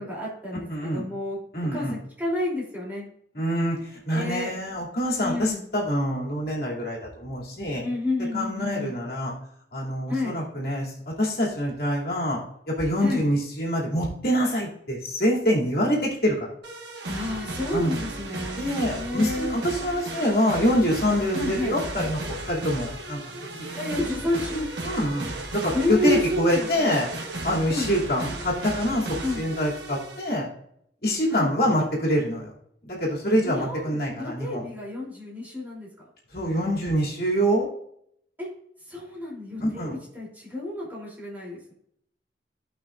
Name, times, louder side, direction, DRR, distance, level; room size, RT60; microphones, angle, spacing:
voice 1, 0.0-1.4 1.7-3.0 4.1-4.5 5.2-5.6 7.8-8.9 10.1-10.3 13.0-13.3 17.1-18.7 19.0-19.6 21.3-21.8 23.7-24.7 25.7-26.9 27.7-27.9 29.2-29.5 31.3-31.5 33.4-36.1 38.4-38.5 38.9-41.7, left 2 dB, 10° right, -6 dB, 3.1 m, -30 dB
voice 2, 0.7-1.0 1.5-1.9 3.3-7.8 8.3-9.3 9.7-12.4 12.8-16.5 17.7-17.9 18.6-22.2 22.5-23.2 23.5-23.6 24.8-25.3 25.5-27.1 27.4-29.1 29.4-30.5 31.0-32.5 32.9-34.6 36.3-37.7 39.6-39.9, equal, 55° left, -3 dB, 2.7 m, -25 dB
sound 1, 16.6-30.4, right 2 dB, 75° right, 1.5 m, -35 dB
16.0 x 5.7 x 2.5 m, 0.70 s
head